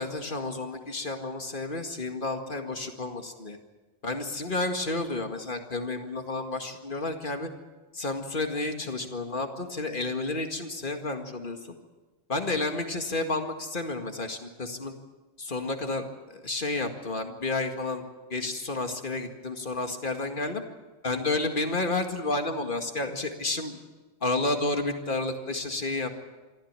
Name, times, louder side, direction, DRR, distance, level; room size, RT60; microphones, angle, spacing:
voice 1, 0.0-3.6 4.0-7.5 7.9-11.6 12.3-14.9 15.4-18.0 18.3-20.6 21.0-23.8 24.2-26.1, left 2 dB, 45° left, 5 dB, 2.2 m, -31 dB
24.5 x 14.5 x 8.9 m, 1.2 s
omnidirectional pair, 1.2 m